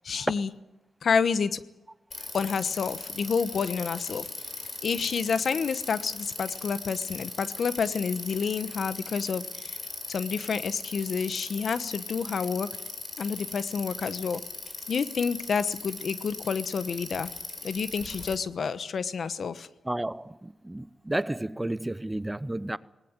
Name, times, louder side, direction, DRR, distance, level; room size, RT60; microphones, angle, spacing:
voice 1, 0.0-0.5 1.0-1.6 2.3-4.3 4.8-9.8 10.1-12.7 13.2-14.4 14.9-17.3 17.6-19.7, left 6 dB, 65° left, 1.0 m, -29 dB
Bicycle, 2.1-18.3, left 3 dB, 45° left, 4.7 m, -39 dB
voice 2, 19.9-22.8, right 1 dB, 15° right, 0.7 m, -32 dB
19.0 x 19.0 x 8.9 m
cardioid pair, 70°, 0 cm